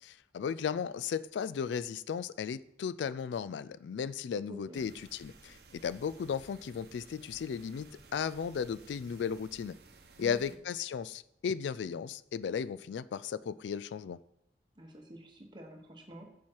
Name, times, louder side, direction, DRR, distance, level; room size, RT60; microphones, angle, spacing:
voice 1, 0.0-9.8 10.2-14.2, left 7 dB, 85° left, 0.3 m, -35 dB
voice 2, 4.5-4.9 10.2-10.5 14.8-16.3, equal, 25° right, 1.2 m, -49 dB
sound 1, 4.7-10.6, right 3 dB, 65° right, 0.9 m, -57 dB
7.4 x 7.3 x 4.6 m
head